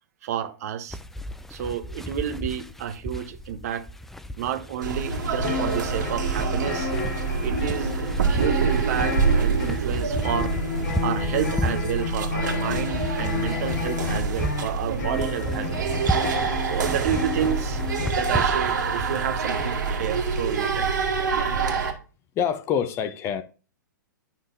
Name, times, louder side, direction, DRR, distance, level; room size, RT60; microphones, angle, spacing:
voice 1, 0.2-1.0 1.5-3.9 4.4-6.9 7.4-10.5 11.0-15.9 16.6-17.8 18.2-20.9 21.5-21.6, right 9 dB, 50° right, 0.9 m, -30 dB
sound 1, 0.9-19.7, left 1 dB, 5° left, 0.3 m, -34 dB
sound 2, 4.8-21.9, right 4 dB, 65° right, 1.8 m, -26 dB
sound 3, 5.4-18.1, left 5 dB, 55° left, 1.7 m, -32 dB
voice 2, 22.4-23.4, left 8 dB, 25° left, 0.7 m, -26 dB
9.7 x 5.7 x 2.6 m
figure-of-eight pair, 115°, 11 cm